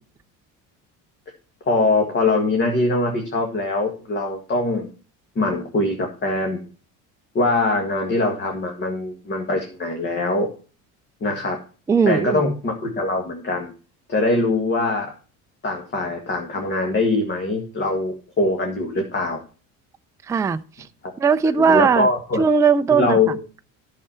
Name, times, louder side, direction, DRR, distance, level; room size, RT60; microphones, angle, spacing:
voice 1, 1.6-4.9 5.3-6.6 7.3-10.5 11.2-11.6 12.0-13.7 14.1-15.1 15.6-19.4 21.6-22.4 22.9-23.4, left 2 dB, 30° left, 1.9 m, -22 dB
voice 2, 11.9-12.5 20.3-20.6 21.2-22.1 22.4-23.2, right 6 dB, 10° right, 0.4 m, -18 dB
11.0 x 6.7 x 4.3 m
cardioid pair, 140°, 36 cm